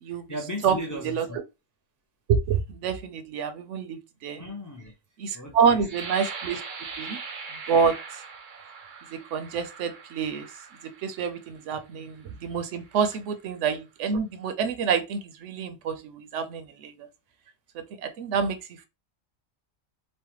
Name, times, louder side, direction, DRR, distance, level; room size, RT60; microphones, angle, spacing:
voice 1, 0.1-1.4 4.4-4.9 5.3-5.9, left 1 dB, 25° left, 0.4 m, -37 dB
voice 2, 2.3-4.4 5.2-6.6 7.0-7.2 7.7-8.0 9.1-10.5 10.8-17.1 17.7-18.9, right 6 dB, 80° right, 0.9 m, -27 dB
sound 1, 5.8-11.5 12.2-12.3 12.8-13.2, right 4 dB, 55° right, 0.6 m, -40 dB
3.2 x 2.1 x 2.9 m
omnidirectional pair, 1.2 m